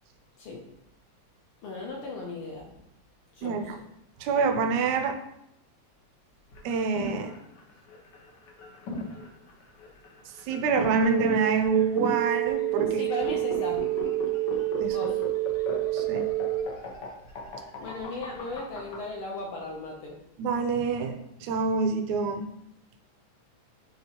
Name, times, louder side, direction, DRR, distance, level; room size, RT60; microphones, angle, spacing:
voice 1, 1.6-2.7 3.4-3.8 12.9-13.8 14.9-15.2 17.8-20.2, left 2 dB, 70° left, -1 dB, 1.3 m, -37 dB
voice 2, 3.4-3.8 4.2-5.2 6.6-7.3 10.5-13.0 14.8-15.0 15.9-16.3 20.4-22.5, right 5 dB, 80° right, 5 dB, 1.9 m, -26 dB
sound 1, 6.5-19.0, left 2 dB, 90° left, 0.9 m, -37 dB
sound 2, 11.0-16.6, right 17 dB, 50° left, 1.2 m, -28 dB
10.5 x 3.5 x 2.9 m, 0.80 s
omnidirectional pair, 3.4 m